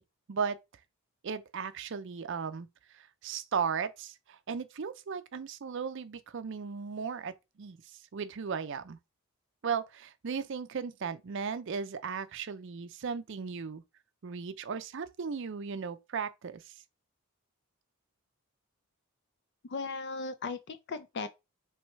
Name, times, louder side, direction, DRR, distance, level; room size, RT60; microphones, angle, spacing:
voice 1, 1.2-9.0 9.6-13.8 14.2-16.7, right 6 dB, 55° right, 0.5 m, -36 dB
voice 2, 19.7-21.3, left 4 dB, 50° left, 0.4 m, -37 dB
4.6 x 3.1 x 3.1 m
head